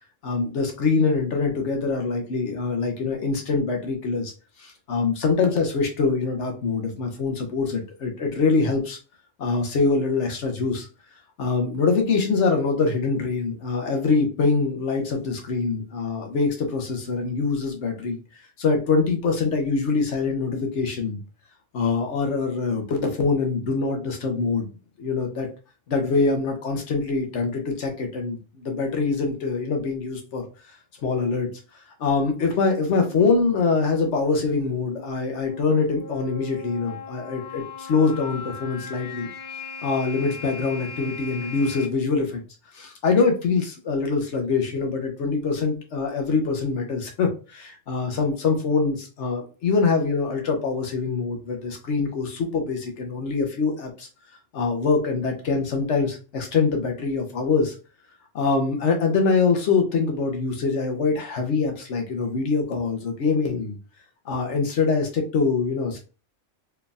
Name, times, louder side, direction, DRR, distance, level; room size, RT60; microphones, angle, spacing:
voice 1, 0.2-4.3 4.6-9.0 9.4-10.9 11.4-18.2 18.6-21.2 21.7-24.7 25.0-25.5 25.9-30.8 31.0-31.5 32.0-39.3 39.8-42.4 42.7-54.1 54.5-57.7 58.3-63.8 64.3-66.0, left 4 dB, 70° left, 3 dB, 1.1 m, -24 dB
sound 1, 32.2-41.9, left 3 dB, 55° left, 0.6 m, -39 dB
4.5 x 3.3 x 2.3 m, 0.33 s
omnidirectional pair, 1.3 m